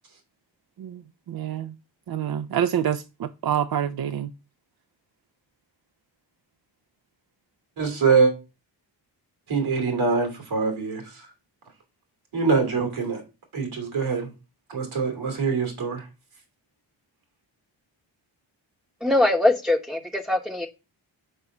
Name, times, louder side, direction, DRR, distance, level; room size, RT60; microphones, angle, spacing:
voice 1, 1.3-1.7 2.1-4.3, right 9 dB, 50° right, 0.6 m, -27 dB
voice 2, 7.8-8.3 9.5-11.3 12.3-13.2 13.5-14.3 14.7-16.0, right 4 dB, 75° right, 2.7 m, -24 dB
voice 3, 19.0-20.7, left 1 dB, ahead, 0.9 m, -22 dB
5.3 x 4.1 x 5.9 m
cardioid pair, 55°, 48 cm